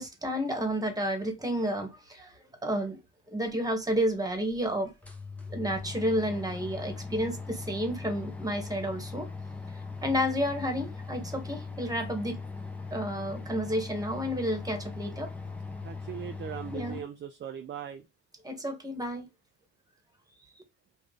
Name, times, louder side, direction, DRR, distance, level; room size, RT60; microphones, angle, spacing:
voice 1, 0.0-2.3 2.6-3.0 3.3-4.9 5.5-9.3 10.0-12.4 12.9-15.3 16.7-17.0 18.4-19.3, equal, 10° right, 1.4 m, -31 dB
sound 1, 3.8-3.9 4.5-4.6 4.9-17.0, left 4 dB, 5° left, 0.7 m, -40 dB
voice 2, 15.8-18.0, right 9 dB, 40° right, 0.5 m, -39 dB
3.1 x 2.5 x 3.9 m
cardioid pair, 90°, 30 cm